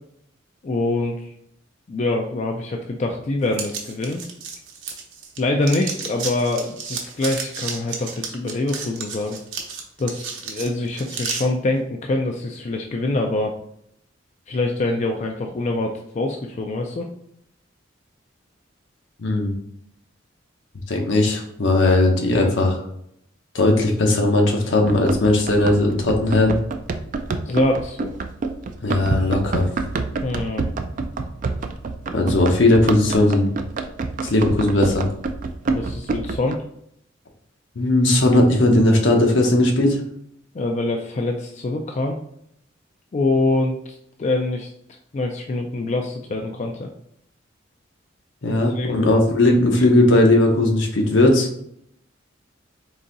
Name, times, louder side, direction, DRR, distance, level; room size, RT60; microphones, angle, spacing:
voice 1, 0.6-1.3 1.9-4.2 5.4-9.4 10.0-13.5 14.5-17.1 27.5-28.1 30.2-30.7 35.7-36.6 40.5-42.2 43.1-44.7 45.1-46.9 48.5-49.0, left 2 dB, 35° left, 2 dB, 0.4 m, -24 dB
sound 1, 3.5-5.4 5.6-11.4, right 6 dB, 75° right, 0.8 m, -32 dB
voice 2, 19.2-19.6 20.9-22.8 23.5-26.6 28.8-29.7 32.1-33.5 34.2-35.1 37.8-40.0 48.4-51.5, left 2 dB, 70° left, 2 dB, 0.8 m, -17 dB
Run, 24.9-36.6, right 3 dB, 45° right, 0.3 m, -27 dB
3.9 x 2.7 x 3.8 m, 0.71 s
head